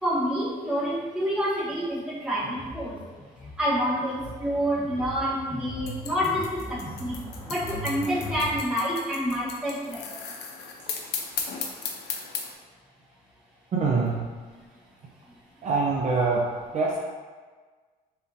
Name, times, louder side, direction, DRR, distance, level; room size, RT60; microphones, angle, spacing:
voice 1, 0.0-3.1 3.6-10.3, equal, 5° right, -9 dB, 1.4 m, -28 dB
sound 1, 2.4-8.6, equal, 20° left, 0.9 m, -39 dB
sound 2, 5.9-12.5, left 6 dB, 75° left, 0.6 m, -35 dB
voice 2, 13.7-14.2 15.6-16.4 16.7-17.0, right 4 dB, 45° right, -3 dB, 0.6 m, -24 dB
4.2 x 3.6 x 2.7 m, 1.4 s
cardioid pair, 110°, 17 cm